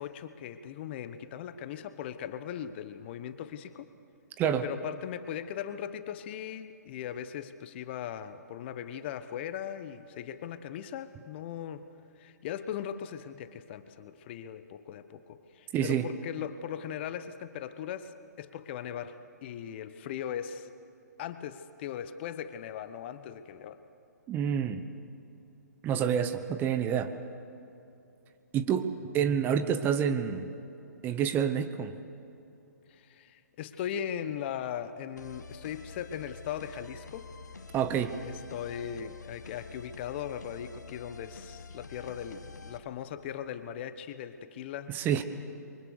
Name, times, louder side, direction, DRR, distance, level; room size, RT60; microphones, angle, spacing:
voice 1, 0.0-3.9 4.6-11.9 12.2-20.7 21.2-23.8 32.9-37.3 38.2-45.1, left 9 dB, 40° left, 11 dB, 1.2 m, -39 dB
voice 2, 4.4-4.7 15.7-16.1 24.3-24.8 25.8-27.2 28.5-30.5 31.0-32.0 37.7-38.2 44.9-45.2, right 8 dB, 20° right, 10 dB, 1.0 m, -28 dB
sound 1, 35.2-42.8, left 4 dB, 85° left, 1.7 m, -47 dB
28.5 x 23.5 x 6.6 m, 2.8 s
figure-of-eight pair, 130°, 9 cm